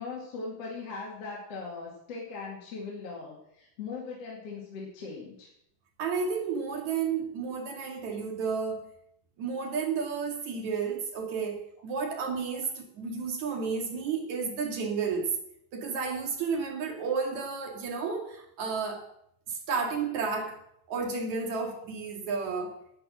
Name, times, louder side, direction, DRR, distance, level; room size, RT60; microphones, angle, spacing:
voice 1, 0.0-5.5 12.0-12.1, left 4 dB, 50° left, -3 dB, 3.2 m, -39 dB
voice 2, 6.0-8.9 9.4-15.3 15.7-19.0 19.5-20.6 20.9-22.7, right 5 dB, 60° right, 2 dB, 3.5 m, -32 dB
11.0 x 9.8 x 6.3 m, 0.73 s
omnidirectional pair, 3.8 m